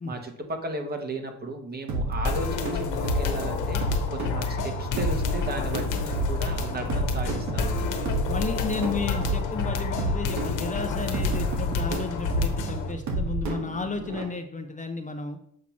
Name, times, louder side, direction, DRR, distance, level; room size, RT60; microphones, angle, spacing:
voice 1, 0.0-7.9, right 2 dB, 30° right, 4 dB, 1.2 m, -35 dB
sound 1, 1.9-14.2, right 1 dB, 70° right, 1.5 m, -31 dB
sound 2, 2.2-12.9, left 4 dB, 85° left, 1.0 m, -29 dB
voice 2, 8.3-15.4, left 4 dB, 25° left, 5 dB, 0.7 m, -33 dB
7.4 x 2.8 x 5.9 m, 0.70 s
cardioid pair, 90°, 30 cm